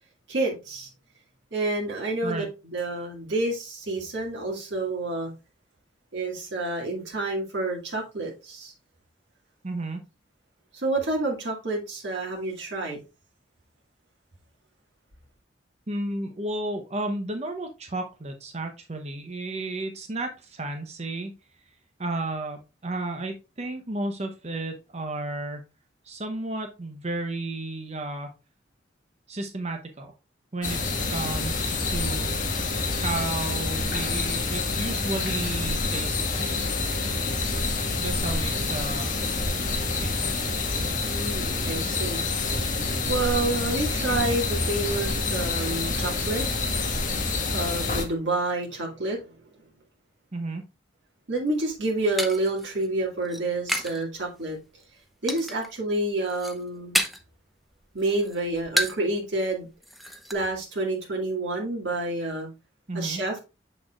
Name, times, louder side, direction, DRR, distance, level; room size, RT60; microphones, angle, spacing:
voice 1, 0.3-0.9 1.5-5.3 6.1-8.7 10.7-13.0 41.1-42.3 43.1-47.0 47.5-49.2 51.3-54.6 55.2-57.0 57.9-59.7 60.3-62.5 62.9-63.4, right 2 dB, 70° right, -2 dB, 2.1 m, -29 dB
voice 2, 9.6-10.0 15.9-21.3 22.0-25.6 26.0-28.3 29.3-30.1 30.5-30.8 31.1-32.3 32.9-36.5 38.0-39.1 40.0-40.7 50.3-50.6 62.9-63.2, right 2 dB, 35° right, 5 dB, 0.8 m, -33 dB
sound 1, 30.6-48.1, left 3 dB, 45° left, 1.5 m, -27 dB
sound 2, 51.5-54.0 54.3-54.8 55.3-55.8 56.1-57.4 57.7-59.1 59.4-59.5 59.8-60.3, equal, ahead, 0.7 m, -31 dB
7.0 x 6.2 x 2.4 m, 0.28 s
head